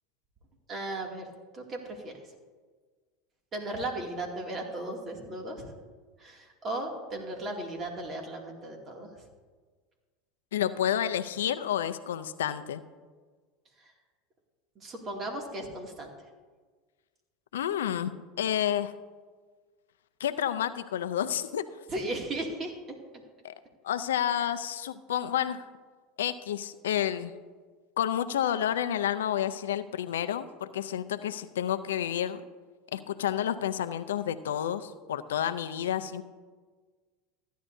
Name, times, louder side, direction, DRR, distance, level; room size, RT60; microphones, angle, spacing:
voice 1, 0.7-1.3 1.5-2.1 3.5-5.6 6.2-9.1 14.8-16.1 21.9-22.7, right 1 dB, 35° right, 1 dB, 2.3 m, -36 dB
voice 2, 10.5-12.8 17.5-18.9 20.2-21.6 23.4-23.5 23.8-25.7 26.2-27.3 28.0-32.4 32.9-36.2, left 10 dB, 85° left, 12 dB, 0.5 m, -30 dB
15.0 x 10.0 x 2.7 m, 1.5 s
hypercardioid pair, 95°, 0 cm